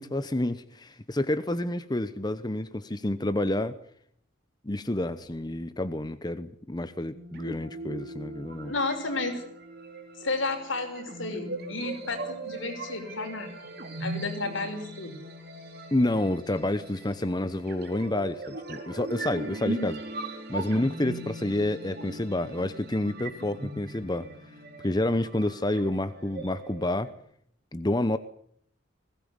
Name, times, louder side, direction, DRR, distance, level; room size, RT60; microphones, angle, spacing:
voice 1, 0.0-3.8 4.6-8.7 15.9-24.3 24.8-27.1 27.7-28.2, left 1 dB, 20° left, 11 dB, 0.9 m, -29 dB
sound 1, 7.1-27.1, right 2 dB, 50° right, 4.5 m, -39 dB
voice 2, 8.7-9.4 10.2-13.6 14.0-15.2, left 3 dB, 75° left, 5 dB, 6.2 m, -32 dB
21.5 x 18.0 x 9.9 m, 0.66 s
head